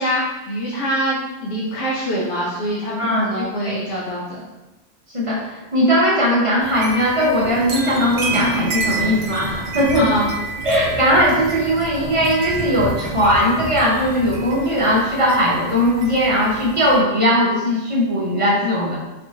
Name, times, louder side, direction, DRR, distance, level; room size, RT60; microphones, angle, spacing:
voice 1, 0.0-4.4 9.9-10.3, equal, 70° left, -5 dB, 1.1 m, -24 dB
voice 2, 5.1-10.1 10.6-19.0, equal, 35° right, -5 dB, 0.6 m, -18 dB
sound 1, 6.6-17.0, right 4 dB, 85° right, 1.1 m, -31 dB
sound 2, 7.3-14.4, right 1 dB, 65° right, 0.9 m, -32 dB
4.2 x 3.2 x 2.7 m, 1.0 s
omnidirectional pair, 1.3 m